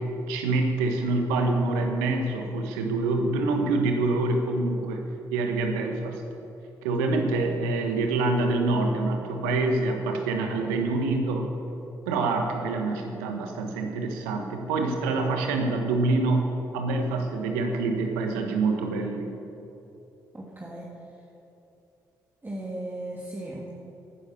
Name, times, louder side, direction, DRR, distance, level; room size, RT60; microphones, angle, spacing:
voice 1, 0.0-5.0 5.3-6.2 6.8-11.5 12.1-19.3, right 3 dB, 80° right, 4 dB, 1.3 m, -26 dB
voice 2, 20.3-20.9 22.4-23.7, right 1 dB, 20° right, -4 dB, 2.1 m, -36 dB
11.5 x 10.0 x 6.9 m, 2.8 s
hypercardioid pair, 40°, 9 cm